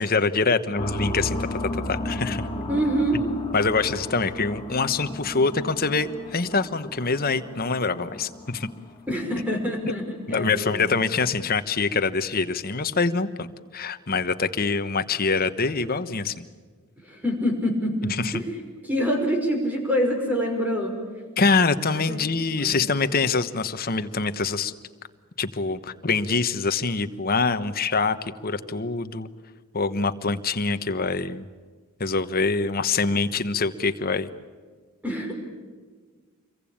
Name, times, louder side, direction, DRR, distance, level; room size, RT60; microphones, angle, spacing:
voice 1, 0.0-1.6 1.9-2.5 3.5-8.7 10.3-13.5 13.7-16.4 18.1-18.3 21.4-24.7 25.4-29.3 29.7-31.5 32.0-34.3, left 4 dB, 40° left, 10 dB, 1.2 m, -25 dB
sound 1, 0.8-9.4, left 1 dB, 25° left, 2.2 m, -34 dB
voice 2, 2.7-3.2 9.1-10.9 17.0-18.5 18.8-21.0 21.9-22.2 22.6-22.9 35.0-35.3, equal, 5° right, 2 dB, 5.5 m, -26 dB
27.5 x 23.0 x 8.8 m, 1.5 s
head